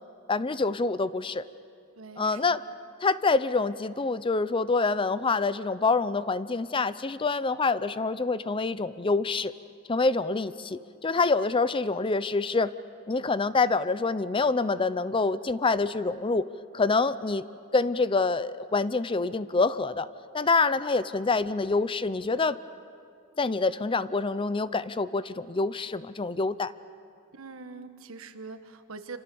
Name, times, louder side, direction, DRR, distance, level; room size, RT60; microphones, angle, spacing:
voice 1, 0.3-1.4 2.2-2.6 3.0-9.5 9.9-12.7 13.1-16.5 16.7-17.4 17.7-20.1 20.3-22.6 23.4-26.7, left 3 dB, 25° left, 15 dB, 0.5 m, -26 dB
voice 2, 2.0-2.6 27.3-29.2, right 4 dB, 85° right, 9 dB, 1.4 m, -43 dB
27.0 x 25.5 x 7.0 m, 2.4 s
head